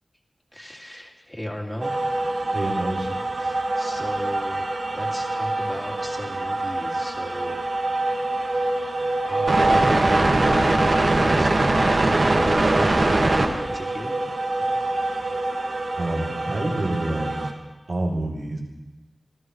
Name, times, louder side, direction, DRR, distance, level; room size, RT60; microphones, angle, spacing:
voice 1, 0.5-1.9 3.3-4.7 4.9-7.6 9.2-11.9 12.4-14.2, left 1 dB, 15° left, 0 dB, 2.4 m, -36 dB
sound 1, 1.8-17.5, right 2 dB, 65° right, 1.8 m, -23 dB
voice 2, 2.5-3.1 15.3-15.4 15.9-17.3 17.9-18.6, right 1 dB, 90° right, -4 dB, 3.3 m, -27 dB
27.0 x 14.0 x 3.2 m, 1.1 s
wide cardioid pair, 85°, 0 cm